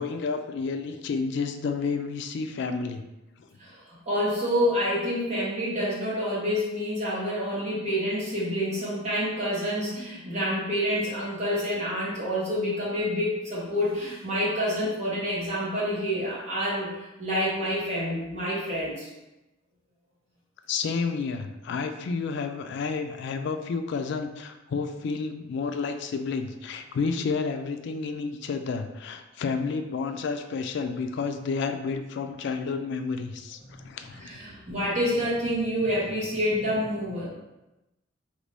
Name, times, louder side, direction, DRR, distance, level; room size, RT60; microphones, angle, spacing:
voice 1, 0.0-3.0 20.7-34.5, left 4 dB, 65° left, 7 dB, 0.3 m, -30 dB
voice 2, 4.1-19.1 33.6-33.9 34.2-37.2, equal, 35° right, -7 dB, 1.2 m, -28 dB
3.0 x 2.6 x 3.3 m, 0.99 s
head